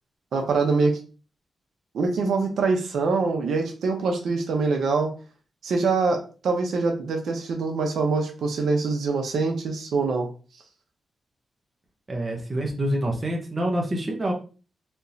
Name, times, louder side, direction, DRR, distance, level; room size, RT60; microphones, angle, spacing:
voice 1, 0.3-1.0 1.9-5.1 5.6-10.3, right 4 dB, 80° right, 3 dB, 0.7 m, -24 dB
voice 2, 12.1-14.3, right 1 dB, 30° right, 1 dB, 0.8 m, -26 dB
3.5 x 2.9 x 2.7 m, 0.36 s
wide cardioid pair, 110°, 0 cm